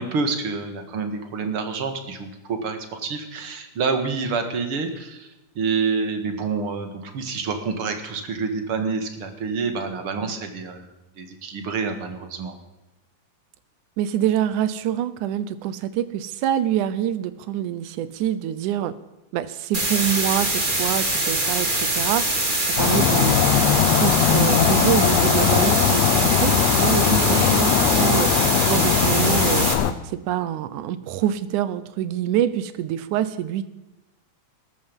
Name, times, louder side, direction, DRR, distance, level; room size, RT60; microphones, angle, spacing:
voice 1, 0.0-5.3 5.6-10.9 11.2-12.5 27.1-27.6, right 4 dB, 50° right, 7 dB, 2.6 m, -27 dB
voice 2, 14.0-18.9 19.3-22.3 22.8-23.4 23.9-28.3 28.7-29.7 30.3-33.7, right 11 dB, 85° right, 14 dB, 2.4 m, -25 dB
sound 1, 19.7-29.7, right 2 dB, 15° right, 2.3 m, -23 dB
sound 2, 22.8-29.9, left 10 dB, 70° left, 1.8 m, -20 dB
19.5 x 13.5 x 5.4 m, 0.97 s
omnidirectional pair, 3.5 m